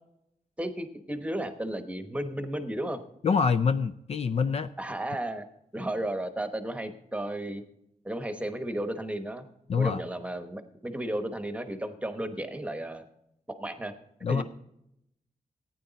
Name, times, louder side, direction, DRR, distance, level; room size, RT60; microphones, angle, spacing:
voice 1, 0.6-3.0 4.8-5.4 5.7-7.6 8.0-9.5 9.8-13.0 13.6-13.9 14.3-14.4, right 1 dB, 10° right, 8 dB, 1.0 m, -33 dB
voice 2, 3.2-4.7 9.7-10.0 14.2-14.4, left 5 dB, 45° left, 12 dB, 0.4 m, -25 dB
15.5 x 9.3 x 4.0 m, 0.78 s
wide cardioid pair, 145°, 14 cm